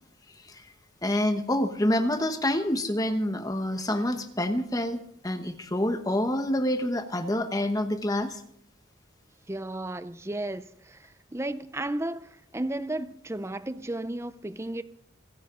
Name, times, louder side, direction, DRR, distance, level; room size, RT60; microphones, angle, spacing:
voice 1, 1.0-8.4, left 1 dB, 20° left, 1.1 m, -27 dB
voice 2, 9.5-14.8, right 1 dB, 15° right, 0.5 m, -34 dB
27.0 x 10.5 x 3.8 m
head